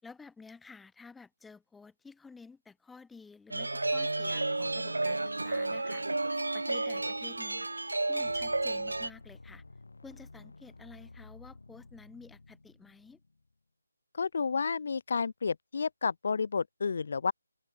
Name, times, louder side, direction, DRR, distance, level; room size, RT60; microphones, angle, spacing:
voice 1, 0.0-7.7 8.1-9.6 10.0-13.2, left 4 dB, 5° left, 6.0 m, -52 dB
sound 1, 3.5-9.1, right 2 dB, 75° right, 0.5 m, -32 dB
sound 2, 8.1-13.5, left 3 dB, 65° left, 6.6 m, -53 dB
voice 2, 14.1-17.3, left 5 dB, 50° left, 0.6 m, -31 dB
open air
figure-of-eight pair, 155°, 0 cm